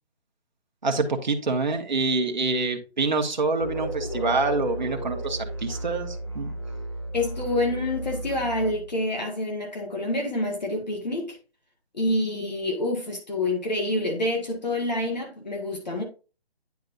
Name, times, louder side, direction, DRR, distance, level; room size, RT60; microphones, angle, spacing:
voice 1, 0.8-6.5, right 3 dB, 45° right, 1.2 m, -26 dB
sound 1, 3.6-9.1, right 1 dB, 25° left, 0.9 m, -34 dB
voice 2, 7.1-11.4 11.9-16.0, left 1 dB, 40° left, 1.7 m, -27 dB
9.5 x 5.2 x 2.6 m
hypercardioid pair, 180°, 32 cm